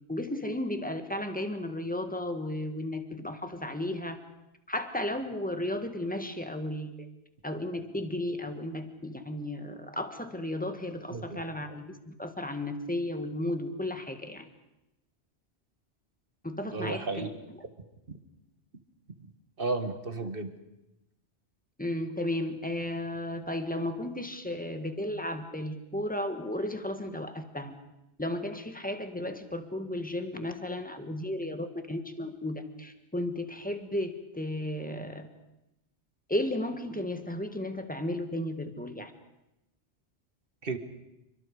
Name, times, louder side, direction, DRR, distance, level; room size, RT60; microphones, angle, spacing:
voice 1, 0.1-4.2 4.7-6.9 7.4-14.5 16.4-17.3 21.8-27.7 28.2-35.3 36.3-39.1, left 1 dB, 5° left, 7 dB, 1.8 m, -34 dB
voice 2, 16.6-17.3 19.6-20.5 40.6-40.8, right 3 dB, 55° right, 8 dB, 1.9 m, -33 dB
28.0 x 24.0 x 5.0 m, 0.91 s
omnidirectional pair, 1.2 m